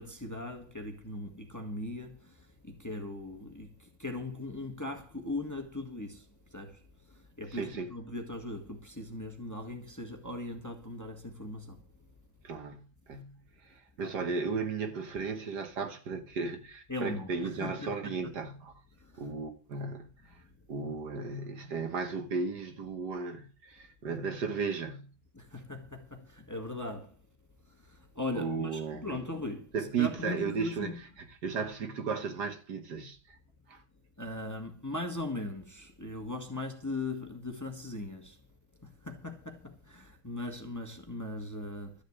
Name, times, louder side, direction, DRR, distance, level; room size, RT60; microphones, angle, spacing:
voice 1, 0.0-2.3 2.6-6.3 6.5-6.8 7.4-11.8 14.0-14.1 16.9-18.1 25.3-27.1 27.9-30.9 34.2-38.4 38.8-41.9, left 2 dB, 10° left, 1.5 m, -39 dB
voice 2, 7.5-7.9 12.4-18.8 19.2-20.4 20.7-25.1 28.3-29.2 29.7-33.4 33.7-33.8, right 5 dB, 60° right, 1.7 m, -35 dB
13.0 x 6.6 x 8.0 m
omnidirectional pair, 2.1 m